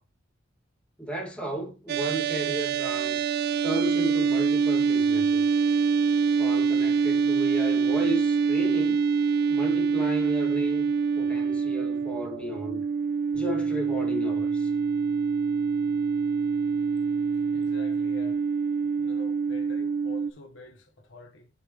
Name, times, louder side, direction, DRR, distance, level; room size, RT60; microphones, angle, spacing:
voice 1, 1.0-3.3 3.6-5.6 6.4-9.0 9.5-12.8 13.3-14.7, right 1 dB, 5° left, 2.1 m, -34 dB
sound 1, 1.9-20.3, right 5 dB, 55° right, 0.4 m, -25 dB
sound 2, 13.3-18.3, equal, 90° right, 3.3 m, -48 dB
voice 2, 17.5-18.5 19.0-21.5, left 1 dB, 70° left, 1.2 m, -47 dB
8.7 x 5.1 x 3.1 m
head